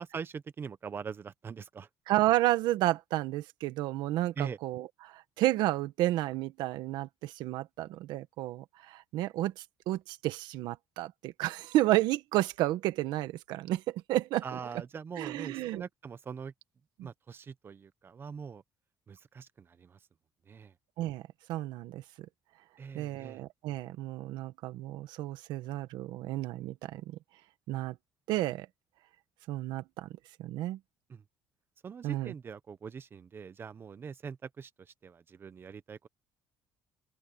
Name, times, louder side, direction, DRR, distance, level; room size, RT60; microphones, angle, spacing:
voice 1, 0.0-1.9 4.4-4.6 14.4-16.5 17.0-18.6 19.1-20.0 20.5-20.7 22.8-23.4 31.1-31.2 31.8-36.1, right 6 dB, 30° right, 1.0 m, -42 dB
voice 2, 2.1-14.4 15.2-15.8 17.0-17.1 21.0-21.2 21.5-22.0 22.9-27.2 27.7-28.0 28.3-28.7 29.5-30.1 30.4-30.8 32.0-32.3, right 15 dB, 80° right, 1.5 m, -31 dB
open air
cardioid pair, 135°, 7 cm